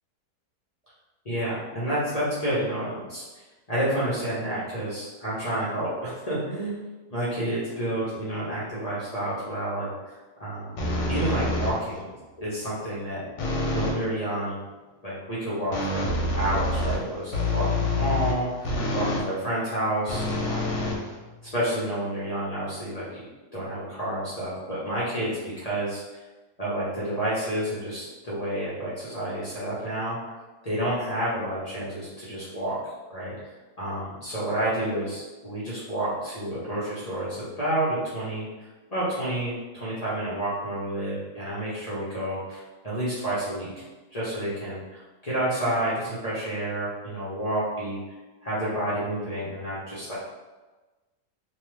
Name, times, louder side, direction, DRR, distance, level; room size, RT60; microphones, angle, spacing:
voice 1, 1.2-3.2 3.7-6.8 7.1-10.1 10.4-10.8 11.1-12.1 12.4-13.2 13.7-14.6 15.0-16.0 16.4-20.6 21.5-23.3 23.5-26.2 26.6-30.4 30.6-32.8 33.1-33.3 33.8-38.5 38.9-43.7 44.1-48.0 48.4-50.2, right 1 dB, 35° left, -9 dB, 0.6 m, -29 dB
sound 1, 10.8-12.0 13.4-14.0 15.7-19.3 20.1-21.6, left 2 dB, 85° left, 1.3 m, -27 dB
3.1 x 2.3 x 3.2 m, 1.2 s
omnidirectional pair, 1.7 m